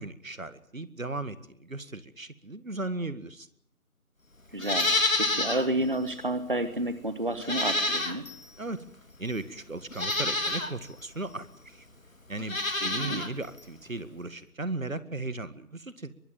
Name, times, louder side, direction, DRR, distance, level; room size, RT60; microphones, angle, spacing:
voice 1, 0.0-3.5 8.6-8.8 9.2-11.9 12.3-16.1, right 2 dB, 60° right, 13 dB, 1.9 m, -36 dB
voice 2, 4.5-4.9 5.2-8.2 12.8-13.2, right 1 dB, 35° right, 11 dB, 1.4 m, -30 dB
Livestock farm animals working animals, 4.6-5.7 6.1-6.2 7.4-8.4 9.3-9.4 9.9-10.7 12.4-13.3 13.6-13.7, left 2 dB, 60° left, 3.4 m, -28 dB
23.0 x 20.0 x 9.3 m, 0.67 s
figure-of-eight pair, 170°, 44 cm